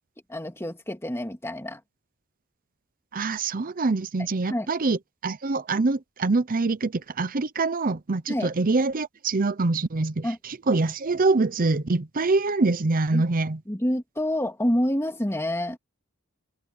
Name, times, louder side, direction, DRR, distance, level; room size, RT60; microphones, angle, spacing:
voice 1, 0.3-1.8 4.4-4.7 8.3-8.5 10.2-10.4 13.1-13.2 13.7-15.8, left 1 dB, 10° left, 2.3 m, -27 dB
voice 2, 3.1-13.6, right 3 dB, 40° right, 0.7 m, -25 dB
open air
head